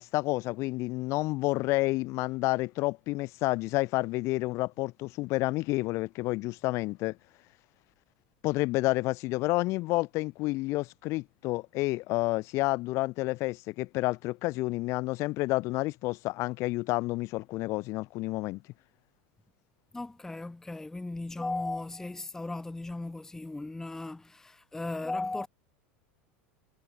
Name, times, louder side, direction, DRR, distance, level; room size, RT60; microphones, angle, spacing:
voice 1, 0.0-7.2 8.4-18.6, left 21 dB, 55° left, 1.0 m, -30 dB
voice 2, 19.9-25.5, left 2 dB, 10° left, 0.6 m, -36 dB
hypercardioid pair, 90°, 6 cm